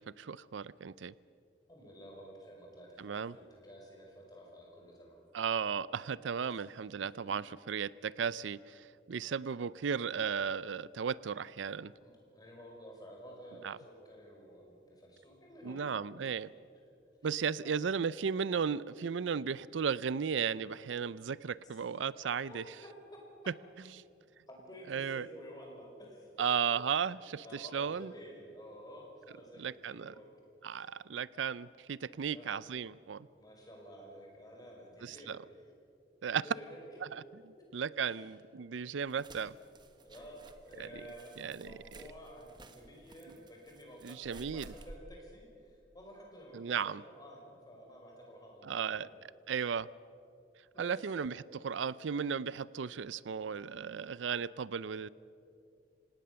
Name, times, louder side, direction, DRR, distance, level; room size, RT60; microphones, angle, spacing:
voice 1, 0.2-1.1 3.0-3.4 5.3-11.9 13.6-13.8 15.6-16.5 17.2-22.6 24.9-25.3 26.4-28.1 29.6-30.1 30.6-33.3 35.0-35.4 36.2-36.4 37.7-39.5 40.8-40.9 41.4-41.8 44.0-44.7 46.5-47.0 48.6-49.1 49.5-49.9 50.8-55.1, right 6 dB, 90° right, 20 dB, 0.5 m, -35 dB
voice 2, 1.7-5.2 6.5-6.6 7.3-7.4 12.0-15.8 16.6-16.7 17.2-17.4 17.6-17.8 21.6-21.7 22.0-22.9 24.5-26.5 27.4-30.3 30.7-30.9 32.3-32.5 33.3-35.7 36.4-37.2 37.8-38.3 40.0-49.1 49.5-49.6 50.7-50.9, equal, 20° left, -1 dB, 5.5 m, -52 dB
sound 1, 39.1-45.0, right 2 dB, 25° right, 1.3 m, -55 dB
26.0 x 18.0 x 6.9 m, 2.6 s
head